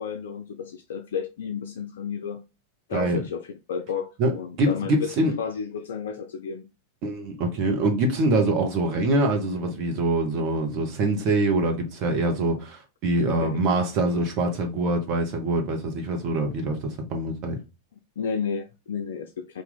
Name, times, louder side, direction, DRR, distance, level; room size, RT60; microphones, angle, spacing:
voice 1, 0.0-2.5 2.9-6.7 13.2-13.6 18.2-19.6, left 6 dB, 60° left, 0.4 m, -32 dB
voice 2, 2.9-3.2 4.2-4.3 4.6-5.3 7.0-17.6, right 2 dB, 40° right, 1.0 m, -24 dB
2.9 x 2.5 x 3.9 m
figure-of-eight pair, 90°, 0 cm